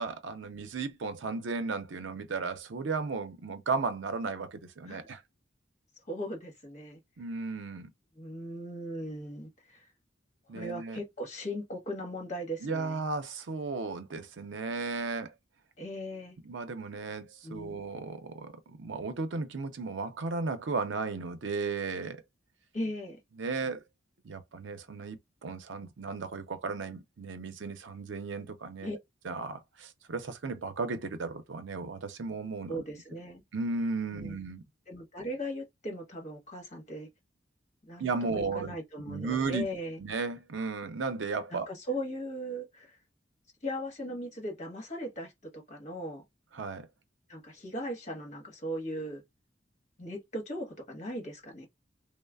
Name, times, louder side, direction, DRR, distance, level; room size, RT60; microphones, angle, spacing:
voice 1, 0.0-5.2 7.2-7.9 10.5-11.0 12.6-15.3 16.4-22.2 23.4-23.8 24.2-29.0 29.2-32.8 33.5-34.6 38.0-38.7 39.1-39.7 40.0-41.7 46.5-46.9, right 4 dB, 85° right, 0.6 m, -35 dB
voice 2, 6.1-7.0 8.2-9.9 10.5-13.0 15.8-16.4 17.4-17.8 22.7-23.2 28.8-29.0 32.7-33.4 34.1-34.4 34.9-37.1 37.8-38.0 38.3-40.0 41.5-43.0 43.6-46.2 47.3-49.2 50.0-51.7, equal, 40° left, 1.1 m, -38 dB
3.1 x 2.0 x 2.2 m
head